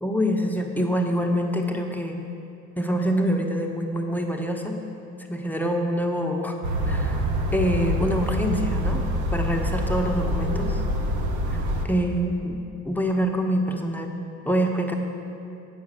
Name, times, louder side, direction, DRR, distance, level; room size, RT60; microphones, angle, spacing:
voice 1, 0.0-2.2 2.8-4.8 5.3-6.6 6.8-9.1 9.3-10.8 11.5-11.6 11.8-14.1 14.5-14.9, equal, 5° left, 2 dB, 0.8 m, -25 dB
sound 1, 6.6-11.9, equal, 70° right, 0.9 m, -26 dB
8.4 x 5.7 x 6.2 m, 2.6 s
cardioid pair, 90°, 30 cm